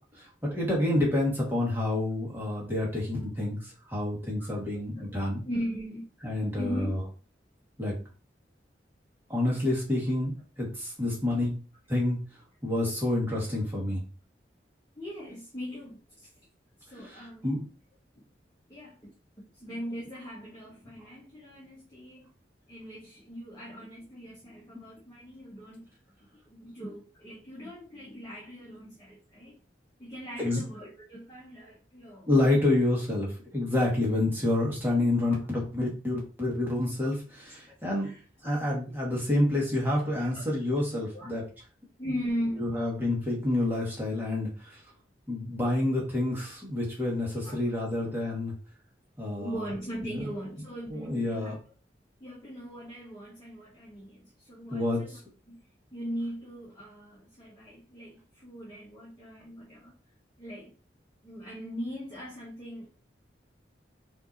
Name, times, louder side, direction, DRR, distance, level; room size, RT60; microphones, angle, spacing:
voice 1, 0.1-5.4 6.2-7.0 7.8-7.9 9.3-11.6 11.9-12.2 12.6-14.0 17.0-17.6 24.7-24.8 30.4-30.6 32.3-38.1 38.4-41.4 42.6-44.8 45.3-48.5 49.2-49.6 50.0-50.2 50.9-51.5 54.7-55.2, left 1 dB, 10° right, -4 dB, 1.6 m, -28 dB
voice 2, 4.7-6.1 6.6-7.0 14.9-16.3 16.8-17.5 18.1-18.2 18.7-19.1 19.5-22.3 22.7-25.9 26.5-29.6 30.0-32.3 37.7-37.8 38.0-38.6 40.2-40.4 41.1-41.3 42.0-42.8 47.4-47.7 49.4-51.6 52.2-55.2 55.5-55.6 55.9-60.0 60.4-60.7 61.2-62.9, equal, 20° left, -8 dB, 1.3 m, -39 dB
5.7 x 2.9 x 2.7 m, 0.35 s
head